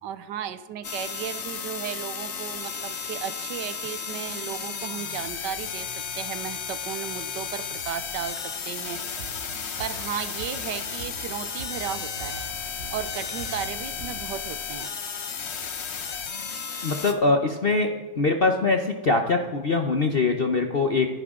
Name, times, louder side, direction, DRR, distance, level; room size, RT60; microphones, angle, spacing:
voice 1, 0.0-9.3 9.8-12.5 12.9-15.0 15.7-15.8, right 9 dB, 70° right, 13 dB, 1.2 m, -35 dB
sound 1, 0.8-17.1, left 6 dB, 50° left, 0.8 m, -34 dB
sound 2, 8.9-14.2, right 3 dB, 40° right, 1.3 m, -44 dB
voice 2, 16.8-17.9 18.2-21.1, left 3 dB, 75° left, 4 dB, 0.5 m, -22 dB
27.0 x 10.5 x 3.7 m, 1.3 s
omnidirectional pair, 2.2 m